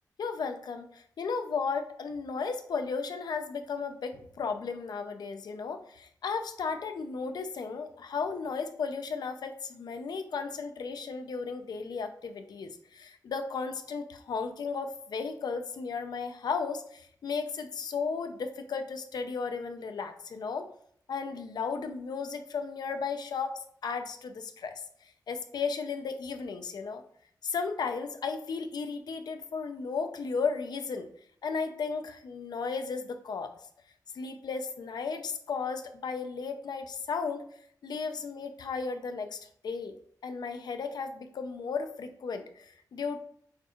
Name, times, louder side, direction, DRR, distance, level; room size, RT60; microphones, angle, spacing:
voice 1, 0.2-20.7 21.1-23.5 23.8-27.0 27.4-31.1 31.4-33.5 34.1-37.4 37.8-39.9 40.2-43.2, left 5 dB, 75° left, 7 dB, 0.5 m, -35 dB
6.4 x 2.4 x 3.0 m, 0.64 s
wide cardioid pair, 125°, 7 cm